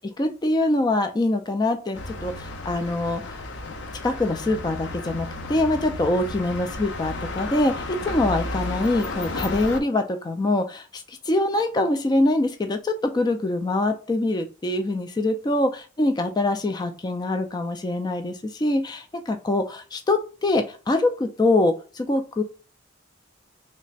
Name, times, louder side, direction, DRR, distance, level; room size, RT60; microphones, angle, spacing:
voice 1, 0.2-3.4 4.0-15.7 16.0-22.4, left 2 dB, 20° left, 7 dB, 0.3 m, -24 dB
sound 1, 1.9-9.8, left 2 dB, 65° left, 0.6 m, -33 dB
3.2 x 2.1 x 3.9 m, 0.34 s
head